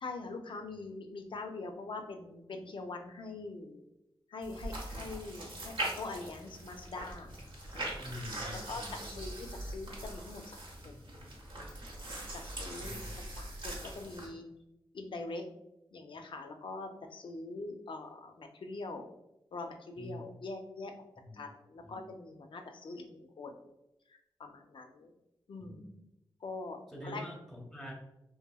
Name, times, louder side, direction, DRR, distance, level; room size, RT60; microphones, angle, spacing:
voice 1, 0.0-3.8 4.3-7.3 7.7-8.1 8.6-10.9 12.3-14.5 14.9-15.4 15.9-19.0 19.5-20.9 21.3-23.5 24.4-25.1 25.5-25.8 26.4-26.8 27.0-27.2, left 3 dB, 65° left, 5 dB, 0.4 m, -43 dB
sound 1, 4.4-14.3, right 1 dB, 70° right, 0.8 m, -42 dB
voice 2, 8.0-9.3 12.8-13.0 20.0-20.2 21.2-21.4 21.8-22.0 25.6-26.0 26.9-27.9, left 1 dB, ahead, 0 dB, 0.7 m, -46 dB
2.8 x 2.5 x 2.2 m, 0.88 s
wide cardioid pair, 70°, 9 cm